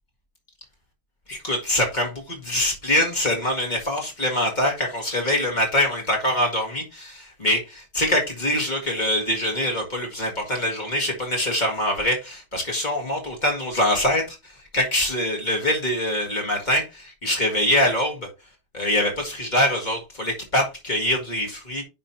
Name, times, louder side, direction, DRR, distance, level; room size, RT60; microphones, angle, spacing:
voice 1, 1.3-18.3 18.7-21.8, left 1 dB, 25° left, 1.0 m, -24 dB
10.0 x 5.4 x 2.9 m
omnidirectional pair, 4.0 m